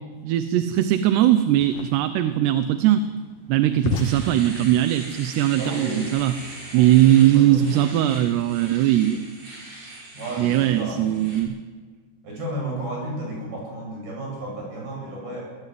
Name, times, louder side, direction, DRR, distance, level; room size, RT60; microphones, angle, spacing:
voice 1, 0.2-3.1 3.5-6.3 6.7-9.2 10.4-11.6, right 12 dB, 85° right, 10 dB, 3.0 m, -20 dB
sound 1, 1.5-6.7, left 4 dB, 60° left, 2.7 m, -34 dB
Domestic sounds home sounds, 3.2-3.3 3.6-11.4, right 2 dB, 45° right, 7.0 m, -41 dB
voice 2, 5.5-6.1 6.7-8.3 10.1-11.2 12.2-15.4, right 1 dB, 65° right, -1 dB, 9.9 m, -33 dB
24.0 x 18.5 x 9.3 m, 1.5 s
omnidirectional pair, 4.7 m